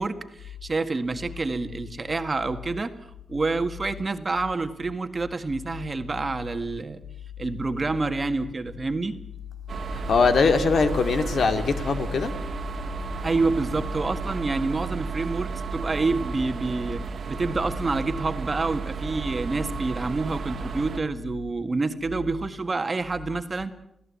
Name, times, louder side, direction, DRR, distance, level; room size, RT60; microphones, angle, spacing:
voice 1, 0.0-2.9 3.3-7.0 7.4-9.1 13.2-23.7, right 3 dB, 30° right, 8 dB, 1.7 m, -28 dB
sound 1, 9.7-21.0, right 5 dB, 55° right, 1.8 m, -33 dB
voice 2, 9.9-12.3, left 4 dB, 70° left, 8 dB, 2.4 m, -22 dB
28.5 x 17.0 x 8.5 m, 0.75 s
wide cardioid pair, 135°, 0 cm